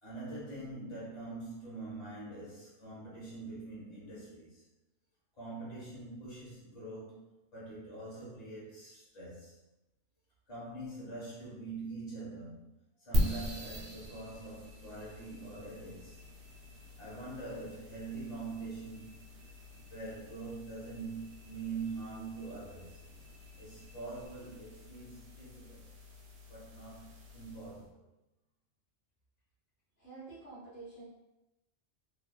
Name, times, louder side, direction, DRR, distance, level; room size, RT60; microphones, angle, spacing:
voice 1, 0.0-4.6 5.4-9.6 10.5-12.7 13.0-16.2 17.0-19.4 19.8-23.0 23.6-25.8 26.5-28.0, right 3 dB, 40° left, -8 dB, 1.3 m, -44 dB
sound 1, 13.1-27.9, equal, 85° right, 0.9 m, -41 dB
voice 2, 30.0-31.0, right 3 dB, 65° left, -10 dB, 1.1 m, -48 dB
2.8 x 2.3 x 2.3 m, 0.95 s
omnidirectional pair, 1.1 m